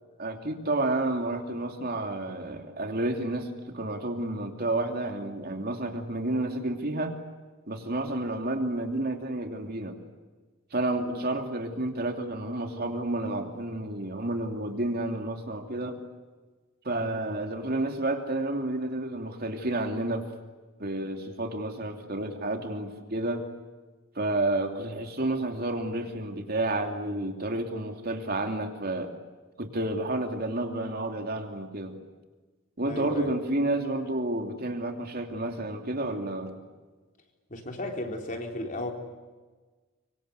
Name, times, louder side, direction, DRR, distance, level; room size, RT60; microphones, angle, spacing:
voice 1, 0.2-7.2 7.7-10.0 10.7-16.0 16.8-20.3 20.8-23.5 24.1-29.1 29.6-32.0 32.8-36.6, right 2 dB, 50° right, 4 dB, 2.9 m, -30 dB
voice 2, 32.8-33.3 37.5-38.9, left 1 dB, 40° left, 3 dB, 3.9 m, -34 dB
25.0 x 25.0 x 8.1 m, 1.3 s
head